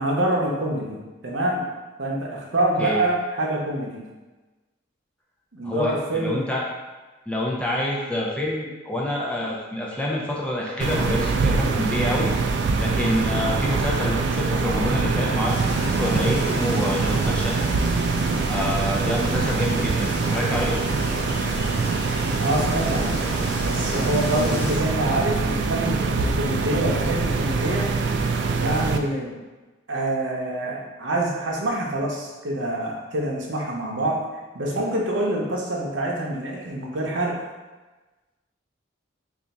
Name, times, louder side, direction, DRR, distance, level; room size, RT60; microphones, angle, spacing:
voice 1, 0.0-1.6 2.0-4.0 5.5-6.4 22.4-23.2 23.6-27.9 28.6-29.3 29.9-34.2 34.5-37.4, right 1 dB, 80° right, -2 dB, 0.8 m, -26 dB
voice 2, 5.6-6.6 7.3-12.3 12.8-17.5 18.5-20.7, left 1 dB, 5° left, -4 dB, 0.5 m, -27 dB
sound 1, 10.8-29.0, right 4 dB, 65° right, 0.3 m, -24 dB
sound 2, 15.5-24.8, left 1 dB, 55° left, 0.9 m, -34 dB
3.4 x 2.5 x 4.0 m, 1.2 s
head